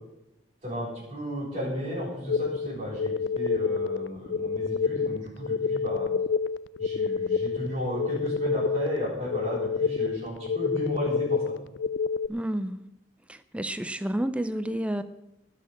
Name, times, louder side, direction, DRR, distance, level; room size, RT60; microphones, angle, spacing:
voice 1, 0.6-6.1 6.8-11.4, equal, 35° right, -6 dB, 7.2 m, -34 dB
sound 1, 2.3-12.3, left 5 dB, 70° left, 0.4 m, -28 dB
voice 2, 12.3-12.8 13.3-15.0, right 1 dB, 5° right, 12 dB, 0.5 m, -30 dB
19.5 x 6.7 x 7.3 m, 0.91 s
head